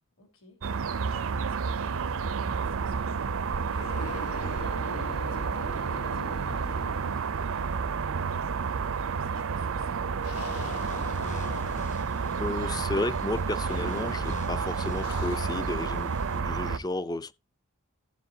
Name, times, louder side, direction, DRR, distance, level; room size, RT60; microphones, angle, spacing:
voice 1, 0.0-11.7, left 2 dB, 60° left, 3.3 m, -56 dB
sound 1, 0.6-16.8, right 5 dB, 65° right, 0.6 m, -30 dB
sound 2, 3.7-7.8 8.1-8.2 10.2-12.2 13.7-14.3 15.0-15.9, left 3 dB, 85° left, 1.4 m, -42 dB
sound 3, 10.3-16.4, left 1 dB, 35° left, 1.3 m, -43 dB
voice 2, 12.3-17.3, left 2 dB, 20° left, 0.5 m, -33 dB
15.0 x 7.7 x 2.8 m
head